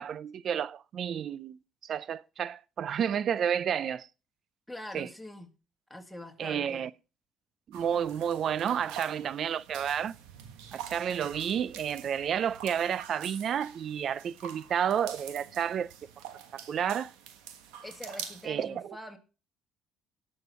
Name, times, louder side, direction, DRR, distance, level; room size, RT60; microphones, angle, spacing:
voice 1, 0.0-4.1 4.9-5.1 6.4-6.9 7.7-10.2 10.7-15.9 16.5-17.1 18.4-18.7, right 8 dB, 55° right, 0.5 m, -31 dB
voice 2, 4.7-5.6 5.9-6.9 17.8-19.2, left 1 dB, 5° left, 2.5 m, -44 dB
sound 1, 7.7-18.5, right 9 dB, 85° right, 1.3 m, -46 dB
17.5 x 6.5 x 4.2 m
supercardioid pair, 70°, 0 cm